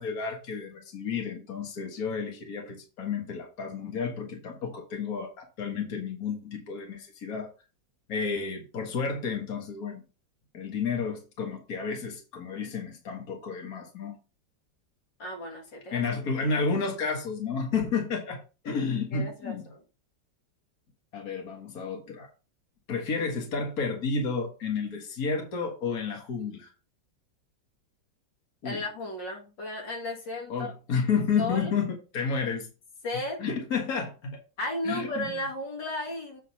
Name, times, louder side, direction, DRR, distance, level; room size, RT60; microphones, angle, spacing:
voice 1, 0.0-7.5 8.1-10.0 10.5-14.2 15.9-18.4 18.6-19.6 21.1-22.3 22.9-26.7 28.6-28.8 30.5-32.7 33.4-34.4 34.8-35.2, left 5 dB, 55° left, 2.1 m, -31 dB
voice 2, 15.2-16.0 19.1-19.8 28.6-30.7 31.4-31.7 33.0-33.4 34.6-36.4, left 1 dB, 85° left, 2.8 m, -34 dB
8.2 x 3.9 x 5.8 m
omnidirectional pair, 1.9 m